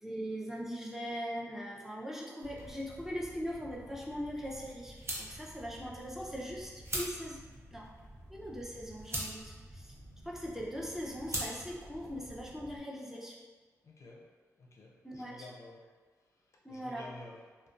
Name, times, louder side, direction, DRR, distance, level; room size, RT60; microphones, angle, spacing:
voice 1, 0.0-7.4 7.7-7.9 8.3-9.9 10.2-13.4 15.0-15.5 16.6-17.1, equal, 5° right, -4 dB, 0.5 m, -40 dB
sound 1, 2.4-12.8, right 1 dB, 45° right, 0.7 m, -44 dB
voice 2, 13.8-14.3 14.6-15.8 16.7-17.4, left 2 dB, 55° left, -1 dB, 0.4 m, -51 dB
2.5 x 2.2 x 2.3 m, 1.4 s
cardioid pair, 55°, 6 cm